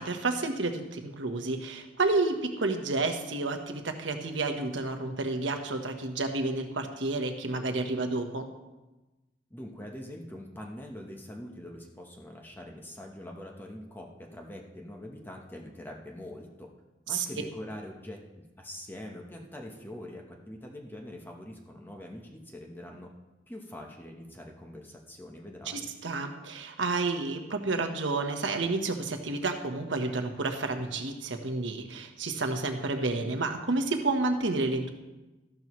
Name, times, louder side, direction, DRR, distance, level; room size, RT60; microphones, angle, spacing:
voice 1, 0.0-8.5 17.1-17.3 25.7-34.9, right 3 dB, 85° right, 5 dB, 1.2 m, -30 dB
voice 2, 9.5-16.7 17.1-23.1 23.5-25.9, left 1 dB, 10° left, 1 dB, 1.0 m, -44 dB
13.5 x 12.0 x 3.2 m, 1.1 s
head